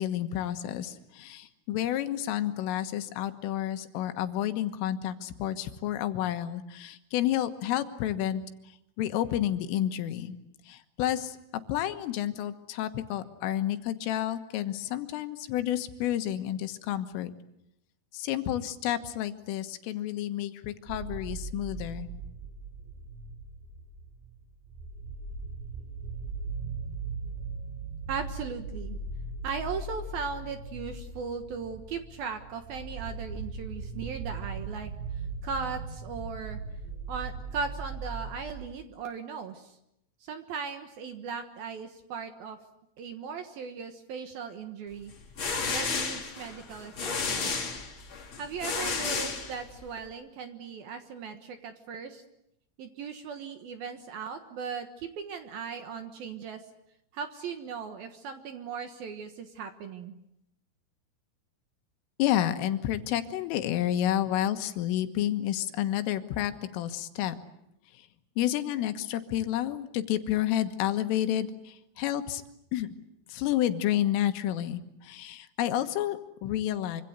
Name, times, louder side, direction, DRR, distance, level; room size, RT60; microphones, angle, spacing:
voice 1, 0.0-8.4 9.0-10.4 10.7-11.4 11.7-17.3 18.1-22.1 62.2-67.4 68.4-72.4 72.7-72.9 73.3-77.0, left 12 dB, 85° left, 8 dB, 3.9 m, -30 dB
sound 1, 20.9-38.7, right 3 dB, 85° right, 5.6 m, -39 dB
voice 2, 28.1-29.0 29.4-34.9 35.4-36.6 37.1-39.8 40.2-42.6 43.0-45.1 45.7-47.5 48.4-52.2 52.8-56.6 57.1-60.2, right 6 dB, 65° right, 7 dB, 2.6 m, -38 dB
sound 2, 45.1-50.0, left 4 dB, 35° left, 2.5 m, -32 dB
26.0 x 25.5 x 8.1 m, 0.81 s
omnidirectional pair, 5.7 m